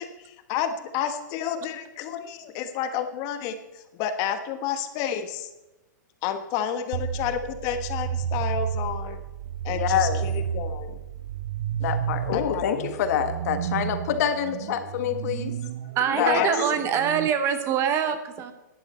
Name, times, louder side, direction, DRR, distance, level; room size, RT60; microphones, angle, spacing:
voice 1, 0.0-5.5 6.2-9.2 9.6-11.0 12.3-12.9 16.1-16.5, left 8 dB, 35° left, 9 dB, 1.2 m, -30 dB
sound 1, 6.9-17.3, right 9 dB, 55° right, 0.5 m, -31 dB
voice 2, 9.7-10.2 11.8-15.5 16.2-16.7, left 9 dB, 55° left, 8 dB, 1.3 m, -26 dB
voice 3, 15.9-18.5, right 8 dB, 25° right, 10 dB, 0.9 m, -24 dB
12.0 x 10.5 x 4.3 m, 1.0 s
hypercardioid pair, 140°, 10 cm